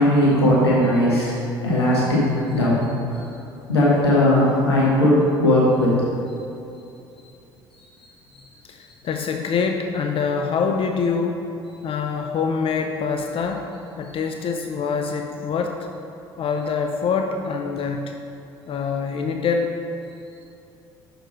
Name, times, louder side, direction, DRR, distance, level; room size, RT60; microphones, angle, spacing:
voice 1, 0.0-1.4 1.6-2.7 3.1-3.2 3.7-5.9 8.3-8.4, left 1 dB, 90° left, -7 dB, 1.2 m, -18 dB
voice 2, 8.6-11.4 11.8-13.7 14.0-15.9 16.4-18.2 18.7-19.7, left 5 dB, 45° left, 4 dB, 0.5 m, -25 dB
6.3 x 4.5 x 5.1 m, 2.7 s
hypercardioid pair, 60°, 13 cm